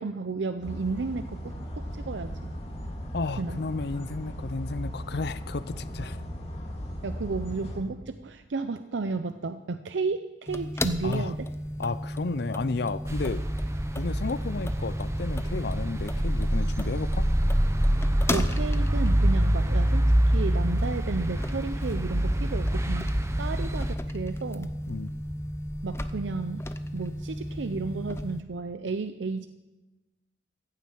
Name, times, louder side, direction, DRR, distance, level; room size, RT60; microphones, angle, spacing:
voice 1, 0.0-2.4 3.4-3.6 7.0-11.5 18.3-23.1 23.4-24.7 25.8-26.6 26.9-29.5, right 4 dB, 80° right, 10 dB, 0.6 m, -33 dB
sound 1, 0.6-7.8, equal, 35° left, 2.2 m, -37 dB
voice 2, 3.1-6.2 11.0-11.3 11.8-13.4 14.0-17.3 24.9-25.1, left 3 dB, 60° left, 15 dB, 0.6 m, -32 dB
sound 2, 10.5-28.4, equal, 15° left, 0.6 m, -35 dB
sound 3, 13.1-23.9, right 1 dB, 15° right, 0.8 m, -26 dB
15.0 x 7.5 x 8.6 m, 1.1 s
head